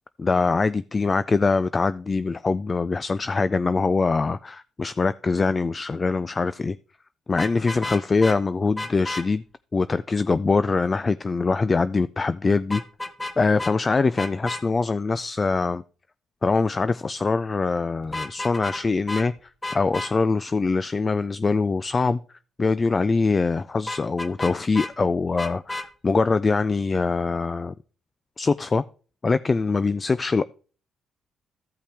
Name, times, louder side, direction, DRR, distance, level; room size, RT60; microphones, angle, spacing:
voice 1, 0.2-6.8 7.3-9.4 9.7-12.8 13.4-15.8 16.4-19.3 19.7-22.2 22.6-27.7 28.4-28.8 29.2-30.4, left 4 dB, 30° left, 0.3 m, -23 dB
Vehicle horn car horn honking, 7.3-8.4 8.8-9.2 12.7-13.3 13.6-13.7 14.2-14.6 18.0-18.8 19.1-19.3 19.6-20.1 23.9-24.9 25.4-25.9, left 2 dB, 15° left, 1.0 m, -32 dB
14.0 x 5.6 x 3.4 m
cardioid pair, 90°, 0 cm